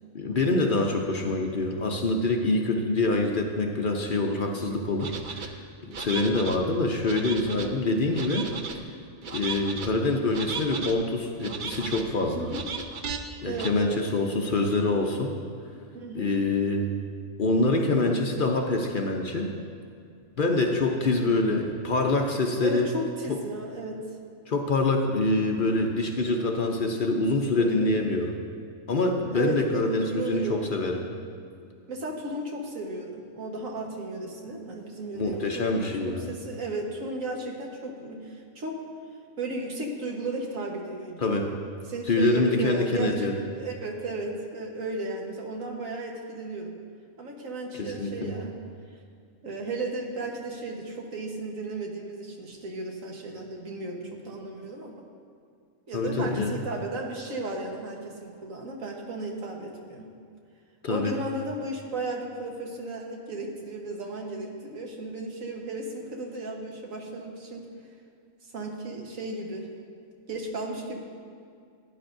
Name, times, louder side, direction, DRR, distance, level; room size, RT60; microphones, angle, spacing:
voice 1, 0.1-5.6 6.0-8.5 9.3-12.5 13.4-15.3 16.1-16.9 17.4-19.5 20.4-22.9 23.3-23.4 24.5-28.3 28.9-31.0 35.1-36.3 41.2-41.5 42.1-43.4 47.8-48.3 55.9-56.5 60.8-61.1, left 2 dB, 45° left, 2 dB, 0.8 m, -25 dB
sound 1, 5.0-5.5 5.9-6.6 7.0-7.7 8.1-8.8 9.2-9.9 10.3-10.9 11.4-12.1 12.5-13.2 13.6-13.7, right 5 dB, 50° right, 0.6 m, -35 dB
voice 2, 12.3-12.7 13.4-14.0 15.9-16.3 21.0-21.4 22.6-24.0 27.6-27.9 29.3-30.6 31.9-38.8 39.4-41.2 41.9-43.3 43.5-46.8 47.2-48.6 49.4-55.1 55.9-60.1 60.9-67.7 68.5-69.7 70.3-71.0, right 2 dB, 85° right, 0 dB, 1.7 m, -35 dB
16.0 x 10.0 x 2.6 m, 2.3 s
omnidirectional pair, 1.4 m